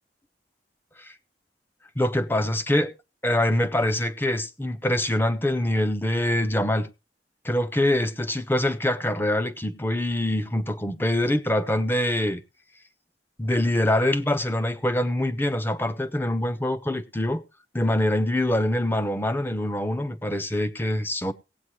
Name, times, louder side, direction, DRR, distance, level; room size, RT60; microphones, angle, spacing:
voice 1, 2.0-2.9 3.2-6.9 7.4-12.4 13.4-17.4 17.7-21.3, left 1 dB, 10° left, 0.6 m, -24 dB
18.0 x 8.2 x 3.1 m
head